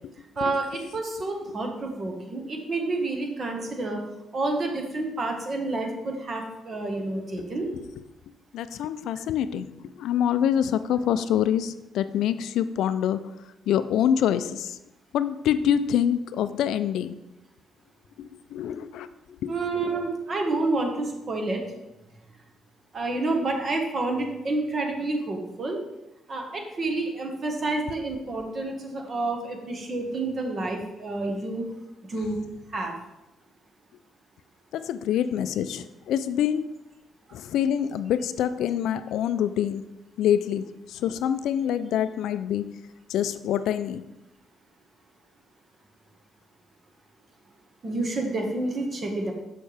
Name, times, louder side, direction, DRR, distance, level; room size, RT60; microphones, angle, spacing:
voice 1, 0.4-4.0 4.3-7.7 19.5-21.6 22.9-25.8 26.3-31.6 32.1-32.4 32.7-32.9 47.8-49.3, right 2 dB, 40° right, 2 dB, 1.4 m, -29 dB
voice 2, 7.4-7.8 8.5-9.7 10.0-13.2 13.7-14.8 15.1-17.1 18.2-19.1 19.4-19.5 34.7-36.7 37.3-39.8 40.2-42.6 43.1-44.0, left 9 dB, 80° left, 13 dB, 0.3 m, -26 dB
6.6 x 6.4 x 3.4 m, 0.95 s
cardioid pair, 90°, 0 cm